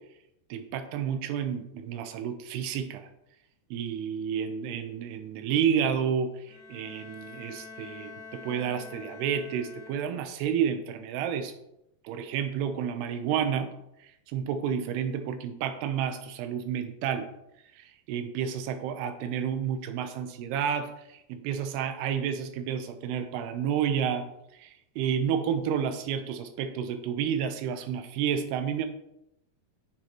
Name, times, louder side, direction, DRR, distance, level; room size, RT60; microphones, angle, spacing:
voice 1, 0.5-3.1 3.7-11.5 12.0-13.7 14.0-17.3 17.8-24.3 24.5-28.9, right 8 dB, 85° right, 8 dB, 2.8 m, -30 dB
Bowed string instrument, 6.5-10.4, left 4 dB, 70° left, 2.1 m, -46 dB
9.8 x 6.5 x 3.0 m, 0.83 s
omnidirectional pair, 4.6 m